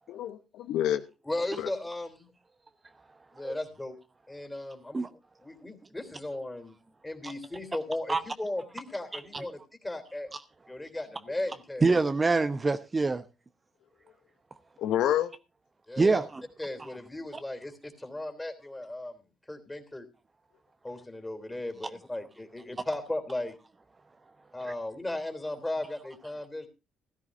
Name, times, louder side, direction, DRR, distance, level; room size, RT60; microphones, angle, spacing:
voice 1, 0.1-1.0 1.6-1.7 14.8-15.3, left 11 dB, 70° left, 0.8 m, -28 dB
voice 2, 1.3-2.3 3.3-4.0 4.3-5.0 5.4-6.7 7.0-10.3 10.7-11.9 15.9-16.2 16.6-20.1 20.8-23.6 24.5-26.7, left 1 dB, 15° left, 3.4 m, -36 dB
voice 3, 11.8-13.2 16.0-16.4, right 3 dB, 30° right, 1.0 m, -25 dB
16.5 x 13.5 x 2.6 m
hypercardioid pair, 50°, 0 cm